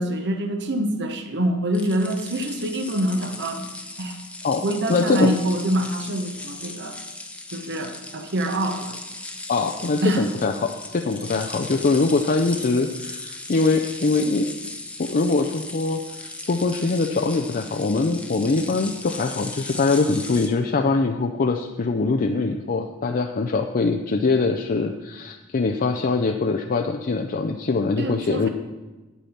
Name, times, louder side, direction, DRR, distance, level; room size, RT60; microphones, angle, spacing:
voice 1, 0.0-3.7 4.0-4.2 4.6-7.0 7.5-9.0 10.0-10.3 28.0-28.5, right 1 dB, 55° right, 6 dB, 1.0 m, -25 dB
sound 1, 1.7-20.5, left 2 dB, 5° left, 0.8 m, -37 dB
voice 2, 4.4-5.3 9.5-14.5 15.0-28.5, left 3 dB, 40° left, 4 dB, 0.5 m, -23 dB
8.9 x 8.3 x 5.8 m, 1.2 s
head